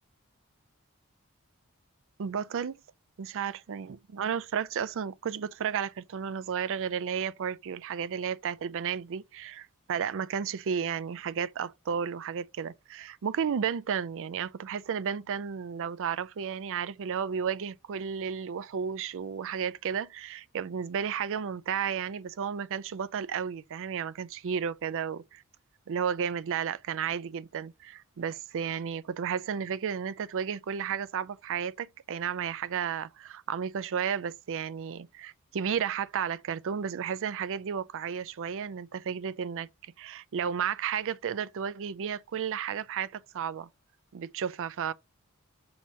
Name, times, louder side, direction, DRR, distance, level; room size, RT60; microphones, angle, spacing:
voice 1, 2.2-2.8 3.2-25.4 25.9-39.7 40.0-43.7 44.1-44.9, right 7 dB, 60° right, 0.4 m, -33 dB
6.4 x 2.8 x 5.5 m
head